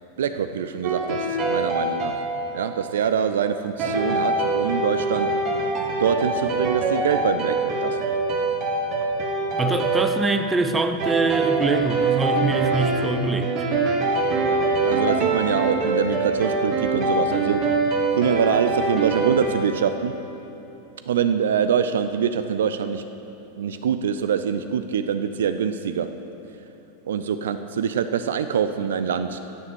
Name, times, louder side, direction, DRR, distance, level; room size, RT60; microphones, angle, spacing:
voice 1, 0.2-2.1 2.5-5.3 6.0-8.0 14.8-17.6 18.2-20.1 21.1-23.0 23.6-26.1 27.0-29.4, right 7 dB, 60° right, 9 dB, 0.4 m, -24 dB
sound 1, 0.8-3.0 3.8-19.6, right 3 dB, 35° right, 1.6 m, -24 dB
voice 2, 9.6-13.5, right 3 dB, 15° right, 7 dB, 0.6 m, -24 dB
9.1 x 7.2 x 7.8 m, 3.0 s
figure-of-eight pair, 90°, 0 cm